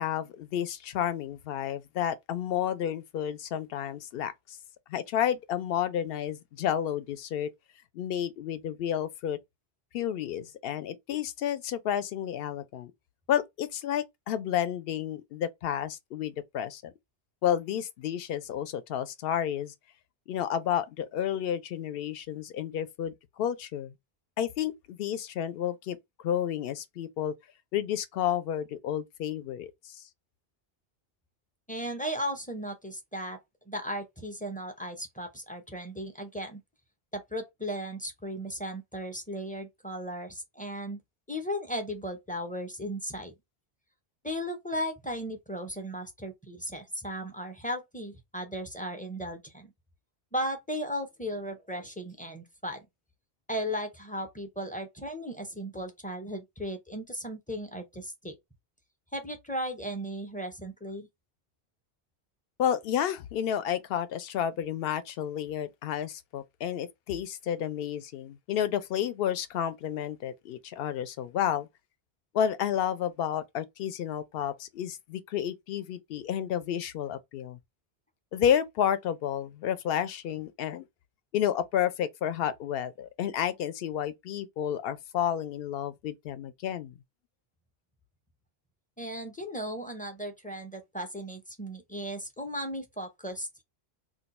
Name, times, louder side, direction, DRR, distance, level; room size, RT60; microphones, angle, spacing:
voice 1, 0.0-4.6 4.9-7.5 7.9-9.4 9.9-12.9 13.3-16.9 17.4-19.7 20.3-23.9 24.4-26.0 26.2-27.3 27.7-30.0 62.6-71.7 72.3-77.6 78.3-80.9 81.3-87.0, left 9 dB, 70° left, 0.7 m, -31 dB
voice 2, 31.7-33.4 33.7-36.6 37.1-41.0 41.3-43.3 44.2-49.7 50.3-52.8 53.5-58.4 59.1-61.1 89.0-93.6, equal, 10° left, 0.4 m, -36 dB
2.6 x 2.2 x 4.0 m
omnidirectional pair, 1.1 m